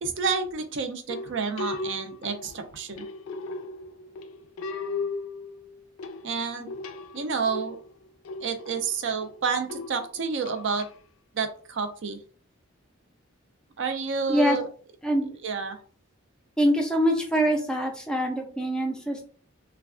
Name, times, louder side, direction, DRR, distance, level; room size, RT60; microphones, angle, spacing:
voice 1, 0.0-3.0 6.2-6.7 7.1-7.8 8.4-10.9 11.3-12.2 13.8-14.7 15.4-15.8, right 5 dB, 60° right, 7 dB, 0.4 m, -29 dB
sound 1, 1.1-10.9, left 3 dB, 85° left, 0.3 m, -37 dB
voice 2, 16.6-19.2, equal, 5° left, 1 dB, 0.4 m, -24 dB
3.2 x 2.2 x 2.4 m, 0.43 s
head